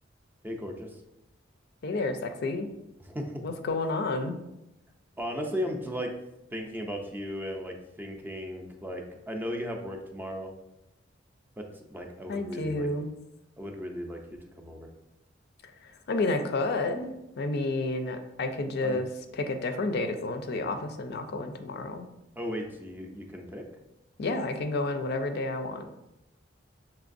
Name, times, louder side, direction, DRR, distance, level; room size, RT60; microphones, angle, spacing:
voice 1, 0.4-1.0 3.0-3.4 5.2-6.1 6.5-10.6 11.6-13.1 13.6-14.9 18.8-19.0 22.4-23.7, equal, 10° right, 2 dB, 0.4 m, -36 dB
voice 2, 1.8-2.7 3.4-4.4 12.3-13.1 15.8-22.1 24.2-25.9, left 2 dB, 60° left, 7 dB, 0.4 m, -30 dB
6.0 x 3.2 x 2.5 m, 0.89 s
head